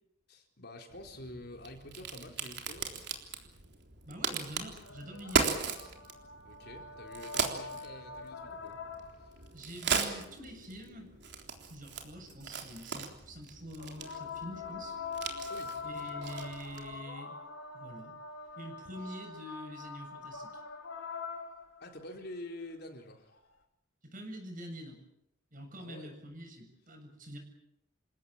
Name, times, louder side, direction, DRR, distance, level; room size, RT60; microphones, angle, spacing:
voice 1, 0.3-3.0 6.4-8.8 9.2-9.3 15.4-15.8 21.8-23.4 25.8-26.1, left 1 dB, 55° left, 3 dB, 4.0 m, -47 dB
Crack, 0.9-17.0, right 5 dB, 60° right, 3.7 m, -38 dB
voice 2, 4.0-5.6 9.5-11.1 11.7-15.0 15.8-17.3 17.7-18.1 18.6-20.6 24.0-25.0 25.5-27.4, equal, 45° right, 4 dB, 7.4 m, -46 dB
Prayer call Morocco, 4.7-9.4 13.8-22.0 23.3-23.4, left 4 dB, 85° left, 3.2 m, -44 dB
28.5 x 17.0 x 8.8 m, 0.80 s
head